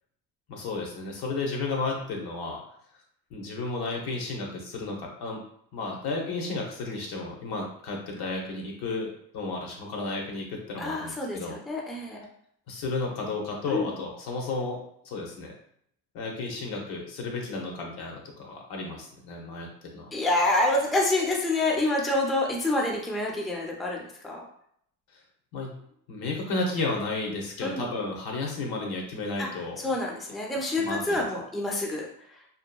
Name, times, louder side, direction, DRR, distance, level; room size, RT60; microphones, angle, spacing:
voice 1, 0.5-2.6 3.3-5.4 5.7-11.6 12.7-15.5 16.1-20.1 25.5-25.8 26.1-29.8 30.8-31.2, left 3 dB, 70° left, 1 dB, 0.8 m, -33 dB
voice 2, 10.8-12.2 13.7-13.9 20.1-24.4 27.6-27.8 29.4-29.5 29.8-32.1, left 2 dB, ahead, -1 dB, 0.3 m, -27 dB
2.8 x 2.3 x 2.2 m, 0.68 s
cardioid pair, 105°, 39 cm